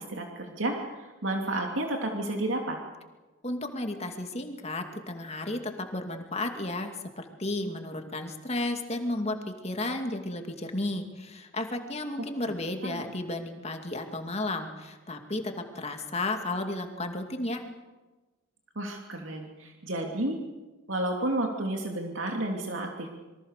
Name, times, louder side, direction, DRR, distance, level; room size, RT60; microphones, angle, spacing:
voice 1, 0.0-2.8 12.8-13.0 18.7-20.4 20.9-23.1, right 1 dB, 70° right, 2 dB, 2.9 m, -31 dB
voice 2, 3.4-17.6, left 2 dB, 30° left, 5 dB, 2.4 m, -33 dB
27.0 x 23.5 x 6.7 m, 1.2 s
head